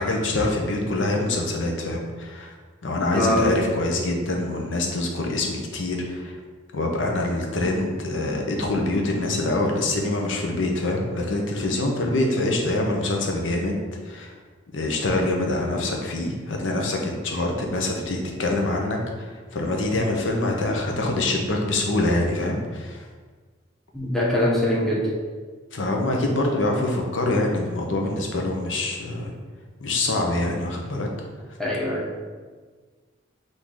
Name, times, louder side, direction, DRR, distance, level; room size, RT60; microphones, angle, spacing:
voice 1, 0.0-2.5 2.8-6.3 6.7-14.3 14.7-23.0 25.7-29.3 29.8-31.1, left 2 dB, 70° left, 1 dB, 0.7 m, -25 dB
voice 2, 3.1-3.6 23.9-25.1 31.6-32.1, equal, ahead, -5 dB, 0.8 m, -22 dB
3.8 x 2.7 x 4.7 m, 1.5 s
head